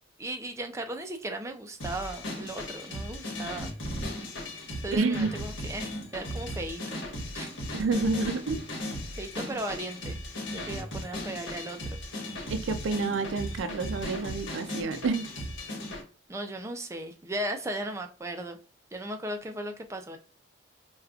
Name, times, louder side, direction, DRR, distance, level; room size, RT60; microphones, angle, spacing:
voice 1, 0.2-3.7 4.8-7.0 7.3-7.5 9.2-10.2 10.5-11.8 16.3-18.6 18.9-20.2, right 1 dB, 15° right, 0.3 m, -36 dB
sound 1, 1.8-16.0, left 1 dB, 75° left, 1.2 m, -37 dB
voice 2, 4.9-5.3 7.7-8.6 12.5-15.3, right 4 dB, 80° right, 0.4 m, -29 dB
4.8 x 2.2 x 2.3 m
head